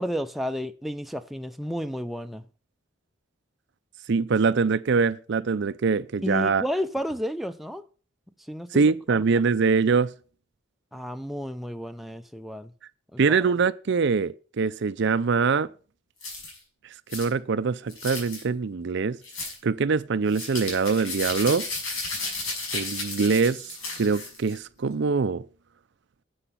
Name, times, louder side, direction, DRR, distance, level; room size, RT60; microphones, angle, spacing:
voice 1, 0.0-2.4 6.2-7.8 8.5-9.2 10.9-12.7 13.1-13.4, equal, ahead, 0.5 m, -32 dB
voice 2, 4.1-6.6 8.7-10.1 13.2-15.7 17.1-19.2 19.6-21.7 22.7-23.7 24.0-25.4, right 5 dB, 55° right, 0.5 m, -23 dB
sound 1, 16.2-16.6 17.1-17.3 17.9-18.4 19.2-19.6 20.3-24.6, left 3 dB, 90° left, 5.9 m, -33 dB
10.0 x 7.9 x 5.7 m
head